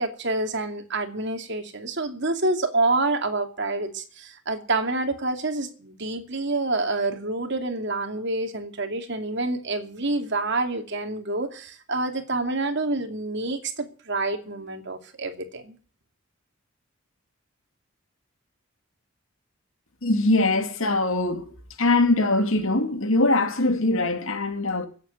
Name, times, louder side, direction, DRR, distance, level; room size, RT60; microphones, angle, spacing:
voice 1, 0.0-15.8, right 2 dB, 55° right, 2.6 m, -27 dB
voice 2, 20.0-21.5 21.8-24.9, left 2 dB, 70° left, 2.4 m, -22 dB
16.5 x 8.3 x 9.4 m
head